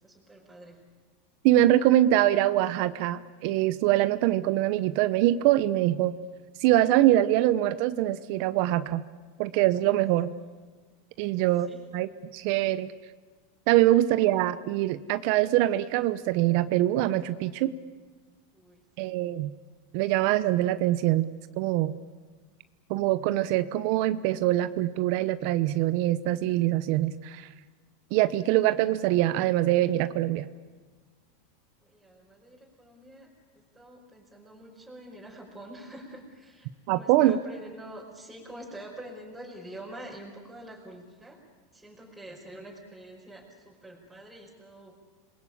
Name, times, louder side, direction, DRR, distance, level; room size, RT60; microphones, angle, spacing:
voice 1, 0.0-0.8 11.3-11.9 18.5-19.2 31.8-33.3 33.5-41.4 41.7-44.9, right 1 dB, 5° right, -4 dB, 5.2 m, -46 dB
voice 2, 1.4-6.1 6.6-9.0 9.4-10.3 11.2-11.7 11.9-12.9 13.7-17.7 19.0-19.5 19.9-21.3 21.6-21.9 22.9-27.5 28.1-30.4 36.9-37.4, right 14 dB, 55° right, 14 dB, 0.9 m, -24 dB
28.0 x 21.5 x 8.8 m, 1.4 s
supercardioid pair, 140°, 0 cm